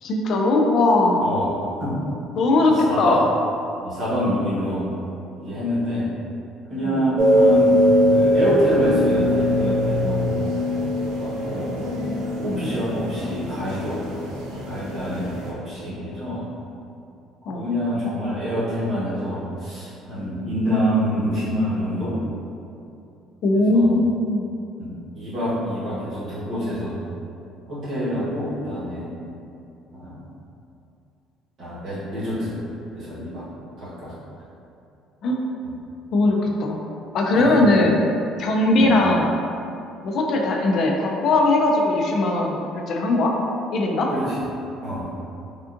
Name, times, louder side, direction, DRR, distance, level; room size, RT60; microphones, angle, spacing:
voice 1, 0.0-1.2 2.4-3.3 6.8-7.1 12.5-12.7 17.5-17.6 23.4-24.5 35.2-35.4 36.1-36.8 37.1-38.0 38.4-39.3 40.0-43.3 43.7-44.1, left 2 dB, 40° left, 0 dB, 0.3 m, -19 dB
voice 2, 1.2-1.5 1.8-2.0 2.7-3.2 3.8-4.8 5.4-6.1 6.7-7.8 8.1-10.4 11.2-11.8 12.4-14.0 14.6-16.4 17.5-22.2 23.5-24.0 24.8-27.0 27.7-29.1 29.9-30.2 31.6-32.6 32.9-33.5 33.8-34.1 37.3-37.5 38.7-38.9 44.1-44.2 44.8-45.1, equal, 35° right, -10 dB, 1.1 m, -26 dB
sound 1, 7.2-15.5, equal, 70° right, 0.5 m, -21 dB
3.5 x 2.5 x 2.4 m, 2.6 s
cardioid pair, 180°, 0 cm